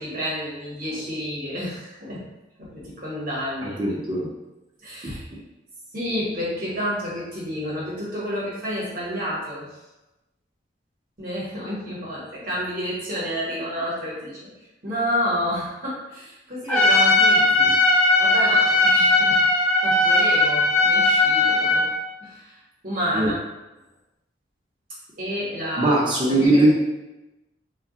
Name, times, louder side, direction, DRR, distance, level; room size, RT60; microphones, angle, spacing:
voice 1, 0.0-2.3 2.6-3.8 4.8-5.3 5.9-9.7 11.2-14.4 14.8-19.4 19.8-21.9 22.2-23.4 25.2-25.9 26.3-26.7, equal, 45° right, -6 dB, 1.0 m, -30 dB
voice 2, 3.6-4.3 5.0-5.1 17.6-17.7 23.1-23.3 25.8-26.7, right 1 dB, 25° right, -4 dB, 0.6 m, -20 dB
Trumpet, 16.7-21.9, left 2 dB, 10° left, 0.7 m, -18 dB
2.2 x 2.1 x 3.6 m, 1.0 s
head